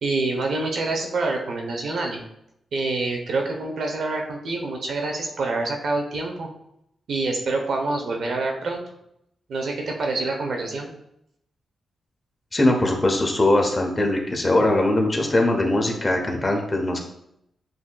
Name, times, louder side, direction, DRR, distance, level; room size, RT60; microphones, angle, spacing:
voice 1, 0.0-2.2 2.7-6.5 7.1-8.8 9.5-10.9, right 3 dB, 65° right, 2 dB, 0.8 m, -26 dB
voice 2, 12.5-17.0, left 1 dB, 25° left, 1 dB, 0.8 m, -21 dB
7.6 x 2.7 x 2.3 m, 0.78 s
cardioid pair, 100°, 0 cm